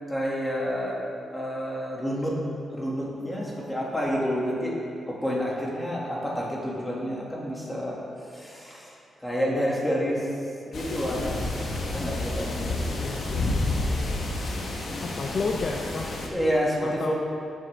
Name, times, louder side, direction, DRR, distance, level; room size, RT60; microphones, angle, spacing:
voice 1, 0.1-1.0 1.3-2.4 2.7-4.7 5.1-8.9 9.2-10.3 10.6-11.4 11.8-13.0 14.9-15.1 16.2-17.1, equal, 10° left, -5 dB, 2.5 m, -29 dB
sound 1, 10.7-16.3, left 2 dB, 60° left, 1.5 m, -30 dB
voice 2, 13.0-13.5 15.0-16.1 16.8-17.1, left 4 dB, 40° left, 2 dB, 0.6 m, -31 dB
14.0 x 9.0 x 3.7 m, 2.6 s
wide cardioid pair, 140°, 0 cm